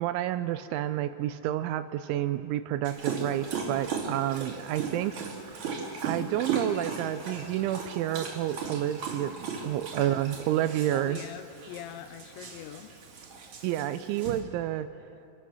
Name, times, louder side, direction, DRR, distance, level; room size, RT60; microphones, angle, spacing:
voice 1, 0.0-5.2 6.0-11.2 13.6-14.9, right 12 dB, 80° right, 11 dB, 2.9 m, -30 dB
Dog, 2.8-14.4, right 5 dB, 45° right, 3.0 m, -37 dB
voice 2, 9.9-10.2 10.9-12.9, left 11 dB, 80° left, 9 dB, 2.8 m, -42 dB
25.5 x 22.0 x 6.2 m, 2.7 s
omnidirectional pair, 5.7 m